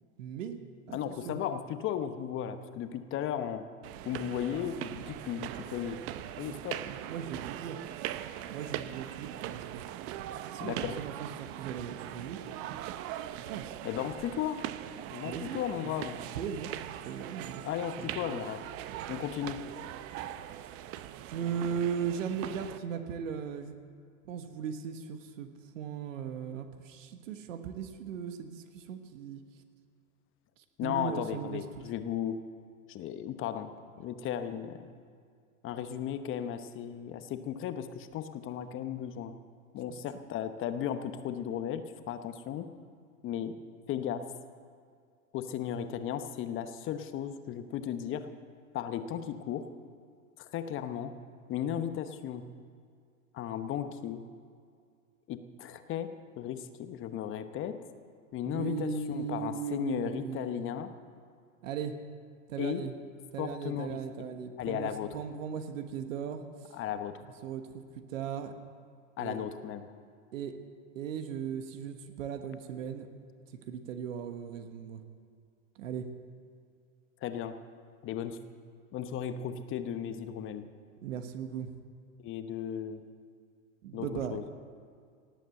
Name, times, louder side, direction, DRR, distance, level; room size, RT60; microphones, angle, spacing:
voice 1, 0.2-0.6 0.9-1.4 6.4-7.8 8.5-9.8 10.5-12.4 13.3-13.8 15.2-16.0 16.3-16.7 17.0-17.7 18.0-18.5 21.2-23.8 24.2-29.4 30.6-31.9 39.9-40.0 58.4-60.6 61.6-62.0 62.5-62.9 63.3-66.8 67.4-68.6 69.2-69.4 70.3-70.6 70.9-73.1 73.5-75.0 75.7-76.1 81.0-81.7 83.8-84.4, right 7 dB, 65° right, 8 dB, 1.4 m, -38 dB
voice 2, 0.9-3.7 4.0-6.0 6.4-6.8 10.6-11.0 13.8-14.7 15.1-16.2 17.6-18.7 19.1-19.6 30.8-32.4 32.9-33.7 34.0-34.9 35.6-39.3 39.7-42.7 43.2-43.6 43.9-44.3 45.3-48.3 48.7-49.7 50.4-51.1 51.5-52.4 53.3-54.2 55.3-57.8 58.3-60.9 62.6-62.8 63.4-64.0 64.6-65.2 66.7-67.2 69.2-69.9 77.2-77.6 78.0-78.4 78.9-80.7 82.2-83.0 83.9-84.4, left 9 dB, 30° left, 10 dB, 1.0 m, -35 dB
sound 1, 3.8-22.8, right 12 dB, 35° right, 0.7 m, -41 dB
18.0 x 8.4 x 7.8 m, 2.2 s
hypercardioid pair, 110°, 41 cm